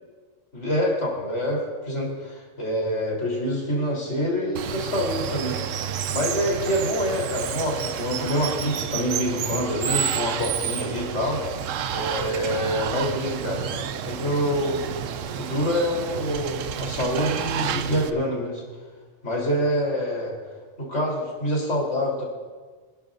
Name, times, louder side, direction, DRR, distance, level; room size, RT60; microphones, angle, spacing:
voice 1, 0.5-5.5 6.1-11.4 11.9-13.6 14.0-14.9 15.4-18.6 19.2-20.3 20.8-22.2, equal, 65° left, -3 dB, 4.2 m, -26 dB
Water, 4.6-18.1, right 9 dB, 90° right, 1.0 m, -30 dB
26.0 x 11.5 x 2.7 m, 1.4 s
omnidirectional pair, 1.3 m